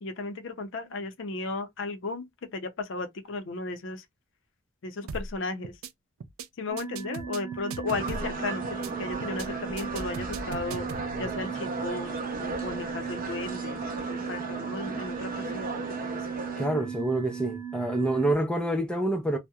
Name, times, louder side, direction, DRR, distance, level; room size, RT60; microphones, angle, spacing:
voice 1, 0.0-4.0 4.8-5.7 6.6-8.6 9.0-10.9 11.2-13.8 14.1-15.7 16.0-16.2, left 3 dB, 60° left, 0.5 m, -35 dB
sound 1, 5.1-5.4 5.6-5.9 6.2-6.5 6.8-8.4 8.6-8.9 9.2-9.5 9.8-11.1, right 4 dB, 85° right, 0.4 m, -38 dB
sound 2, 6.7-18.3, right 8 dB, 15° right, 0.9 m, -37 dB
sound 3, 7.9-16.7, right 2 dB, 45° right, 0.6 m, -36 dB
voice 2, 16.6-19.4, right 1 dB, 5° left, 0.4 m, -27 dB
2.7 x 2.0 x 2.2 m
head